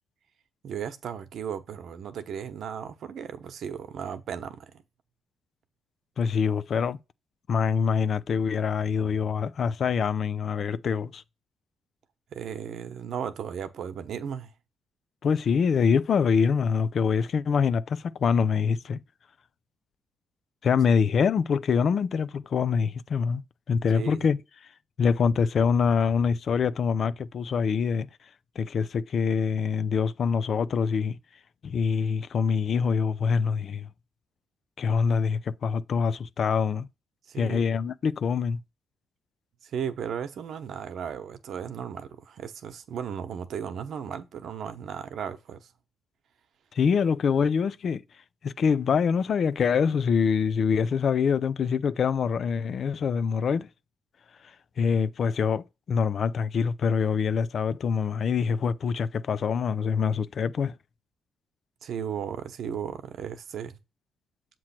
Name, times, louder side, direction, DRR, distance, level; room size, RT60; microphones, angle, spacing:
voice 1, 0.6-4.8 12.3-14.5 23.9-24.3 37.3-37.7 39.6-45.7 61.8-63.8, right 8 dB, 65° right, 1.0 m, -35 dB
voice 2, 6.2-7.0 7.5-11.2 15.2-19.0 20.6-23.4 23.7-24.4 25.0-28.1 28.6-31.2 31.6-33.9 34.8-36.9 37.4-38.6 46.7-48.0 48.4-53.7 54.8-60.8, left 6 dB, 55° left, 0.5 m, -25 dB
7.5 x 3.1 x 5.8 m
cardioid pair, 90°, 0 cm